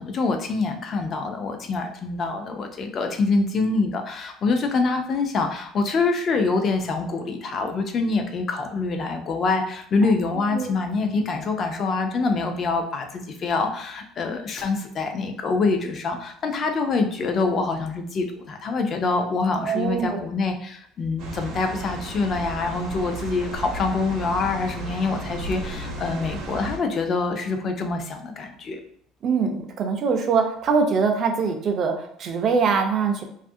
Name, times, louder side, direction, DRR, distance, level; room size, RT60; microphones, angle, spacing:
voice 1, 0.0-28.8, left 3 dB, 35° left, 5 dB, 0.4 m, -25 dB
voice 2, 10.0-10.7 11.1-11.2 19.6-20.2 29.2-33.2, right 5 dB, 40° right, 5 dB, 0.4 m, -23 dB
sound 1, 21.2-26.8, right 2 dB, 70° right, 0.7 m, -34 dB
2.7 x 2.4 x 2.6 m, 0.66 s
cardioid pair, 155°, 0 cm